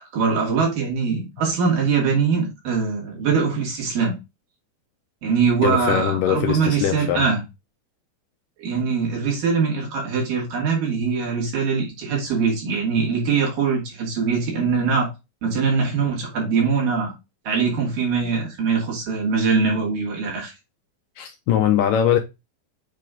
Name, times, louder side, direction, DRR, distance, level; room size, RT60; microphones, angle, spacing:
voice 1, 0.1-4.2 5.2-7.4 8.6-15.1 15.4-17.1 17.5-20.5, right 5 dB, 65° right, 4.0 m, -22 dB
voice 2, 5.6-7.3 21.2-22.2, left 10 dB, 80° left, 2.0 m, -21 dB
7.6 x 3.3 x 3.8 m
omnidirectional pair, 4.3 m